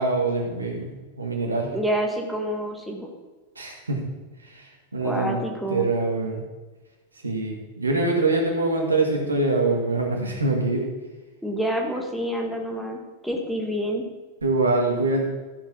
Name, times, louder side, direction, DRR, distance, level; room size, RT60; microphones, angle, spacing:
voice 1, 0.0-1.7 3.6-4.0 4.4-4.6 4.9-6.4 7.2-10.9 14.4-15.2, right 2 dB, 80° right, 1 dB, 2.0 m, -24 dB
voice 2, 1.7-3.1 5.0-5.9 10.9-11.0 11.4-14.0, equal, ahead, 0 dB, 1.6 m, -28 dB
13.0 x 7.4 x 4.0 m, 1.2 s
figure-of-eight pair, 90°, 0 cm